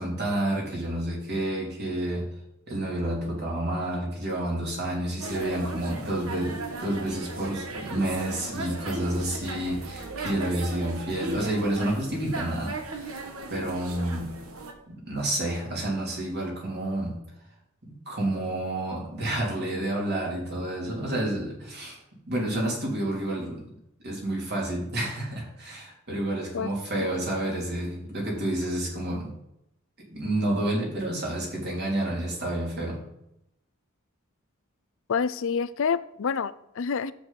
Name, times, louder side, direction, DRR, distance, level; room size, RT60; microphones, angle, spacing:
voice 1, 0.0-2.3 2.7-14.4 14.9-17.2 18.0-22.0 22.3-23.7 24.0-29.3 30.1-33.0, right 1 dB, 50° right, -2 dB, 3.4 m, -29 dB
sound 1, 5.2-14.7, right 2 dB, 90° right, 1.4 m, -37 dB
voice 2, 35.1-37.1, left 6 dB, 65° left, 15 dB, 0.5 m, -27 dB
10.0 x 8.3 x 4.2 m, 0.82 s
head